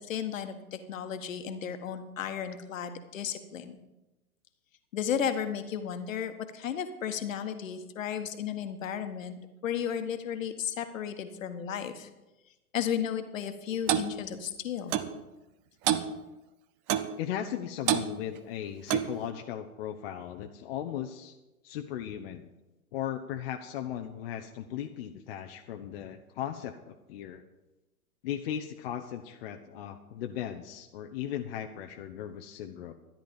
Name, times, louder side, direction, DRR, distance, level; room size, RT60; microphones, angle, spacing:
voice 1, 0.0-3.7 4.9-12.1 12.7-15.0, left 8 dB, 60° left, 8 dB, 1.5 m, -34 dB
Clock, 13.9-14.1 14.9-15.1 15.9-16.1 16.9-17.1 17.9-18.1 18.9-19.2, right 11 dB, 20° right, 0.5 m, -26 dB
voice 2, 17.2-21.3 21.6-22.5 22.9-27.4 28.2-32.9, left 10 dB, 40° left, 5 dB, 0.9 m, -37 dB
13.0 x 10.5 x 5.4 m, 1.0 s
figure-of-eight pair, 110°, 44 cm